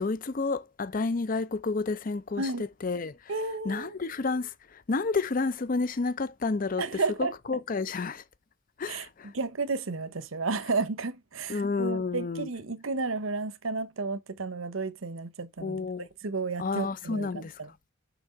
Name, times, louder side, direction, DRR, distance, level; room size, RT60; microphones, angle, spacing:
voice 1, 0.0-3.3 3.6-6.8 7.5-8.2 8.8-9.3 11.5-12.5 15.6-16.1 16.6-17.6, left 4 dB, 40° left, 0.5 m, -30 dB
voice 2, 3.3-3.9 6.8-7.3 8.9-15.8 16.2-17.7, right 3 dB, 75° right, 0.9 m, -32 dB
6.1 x 4.5 x 5.1 m
head